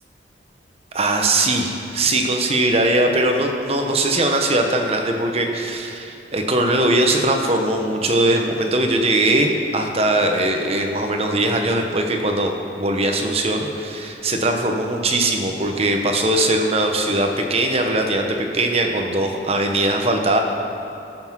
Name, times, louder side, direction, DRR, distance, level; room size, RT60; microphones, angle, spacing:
voice 1, 0.9-12.5 12.8-20.4, right 1 dB, 35° right, 3 dB, 1.0 m, -20 dB
14.0 x 5.9 x 6.0 m, 2.8 s
head